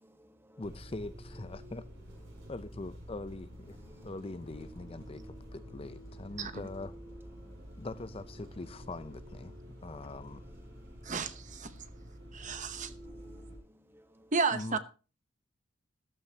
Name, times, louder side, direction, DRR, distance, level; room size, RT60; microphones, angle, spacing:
voice 1, 0.0-0.6 2.3-2.5 3.8-4.2 4.6-5.7 6.1-6.6 7.1-7.9 9.5-11.1 11.9-14.3, equal, 10° right, 1.2 m, -62 dB
voice 2, 0.6-1.8 2.5-3.8 4.0-6.9 7.8-9.5 9.8-10.4 14.5-14.8, left 2 dB, 30° left, 0.6 m, -42 dB
Bus, 0.6-13.6, equal, 70° right, 6.8 m, -49 dB
voice 3, 11.0-11.7 12.3-12.9 14.3-14.8, right 4 dB, 40° right, 0.9 m, -32 dB
14.5 x 13.0 x 2.9 m
head